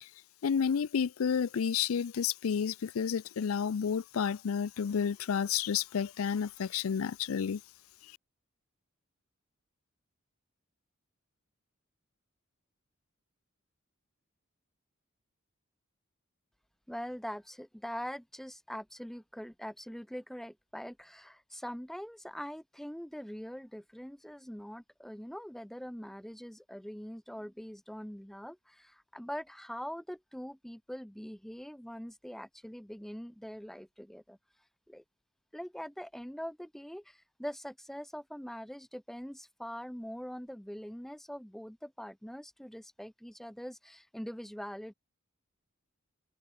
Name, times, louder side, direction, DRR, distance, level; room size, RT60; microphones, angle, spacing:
voice 1, 0.4-7.6 8.0-8.1, left 7 dB, 80° left, 0.4 m, -31 dB
voice 2, 16.9-34.4 34.9-35.0 35.5-44.9, equal, ahead, 0.5 m, -43 dB
head